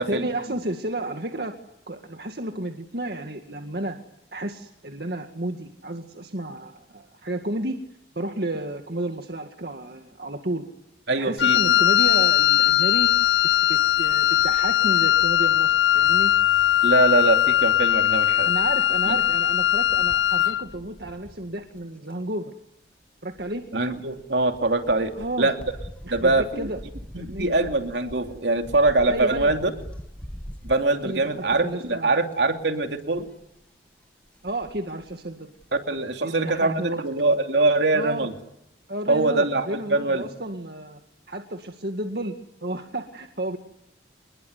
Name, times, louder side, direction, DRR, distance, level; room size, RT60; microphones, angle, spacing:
voice 1, 0.0-1.6 1.9-4.0 4.3-7.8 8.2-10.7 11.2-13.1 13.6-16.3 18.4-22.5 23.2-23.6 25.1-25.5 26.0-26.8 27.2-27.5 29.1-29.5 31.0-32.1 34.4-35.5 36.2-37.0 37.9-38.3 38.9-41.0 41.3-42.3 42.6-43.6, right 1 dB, 60° right, 5 dB, 2.1 m, -32 dB
voice 2, 11.1-11.6 16.8-18.5 19.1-19.2 23.7-25.1 25.4-25.6 26.1-26.7 27.1-29.7 30.6-33.3 35.9-38.3 39.1-40.3, right 2 dB, 75° right, 5 dB, 3.0 m, -23 dB
Wind instrument woodwind instrument, 11.4-20.6, left 12 dB, 90° left, 1.4 m, -20 dB
sound 1, 19.9-22.1 23.3-31.9 32.3-32.6 32.9-33.4 34.3-35.1 35.6-35.7 36.0-36.1, equal, 5° left, 1.7 m, -42 dB
28.5 x 21.5 x 9.7 m, 0.84 s
head